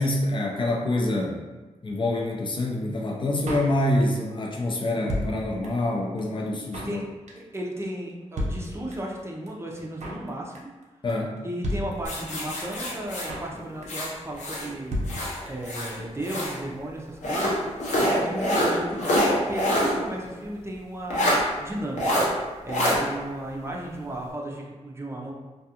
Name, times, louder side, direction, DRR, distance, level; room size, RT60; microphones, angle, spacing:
voice 1, 0.0-1.4 1.8-7.0 11.0-11.3, left 1 dB, 40° left, -1 dB, 0.4 m, -26 dB
Drum kit, 3.5-4.3 4.6-4.7 4.8-5.9 6.2-6.3 6.5-7.0 7.3-7.6 7.8-8.1 8.4-9.2 9.5-9.6 9.7-10.3 10.6-10.8 11.1-11.2 11.4-11.5 11.6-12.5 12.7-12.8 13.0-13.6 13.8-14.1 14.4-14.5 14.6-14.7 14.9-15.7 16.0-16.1 16.3-16.4, equal, 70° right, 0.6 m, -32 dB
voice 2, 7.4-10.7 11.4-15.0 15.5-21.3 21.6-25.3, right 1 dB, 20° right, -2 dB, 0.5 m, -35 dB
sound 1, 12.0-14.7 15.0-16.6 17.2-20.0 20.3-20.4 21.1-21.4 22.0-22.3 22.7-23.0, equal, 80° left, 0.7 m, -25 dB
2.3 x 2.3 x 2.8 m, 1.2 s
cardioid pair, 70°, 12 cm